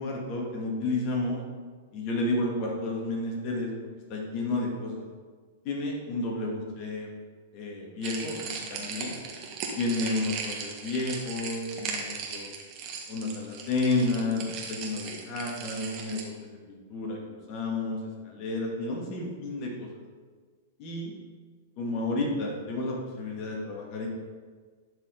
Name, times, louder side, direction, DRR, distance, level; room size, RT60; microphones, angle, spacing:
voice 1, 0.0-1.4 1.9-3.7 4.1-5.1 5.6-7.1 7.5-9.1 9.8-12.5 13.1-16.3 16.7-18.0 18.2-20.0 20.8-21.1 21.8-24.1, left 2 dB, 45° left, -1 dB, 2.1 m, -31 dB
sound 1, 8.0-16.2, right 5 dB, 40° right, 1.6 m, -37 dB
11.5 x 5.1 x 3.9 m, 1.5 s
hypercardioid pair, 110°, 0 cm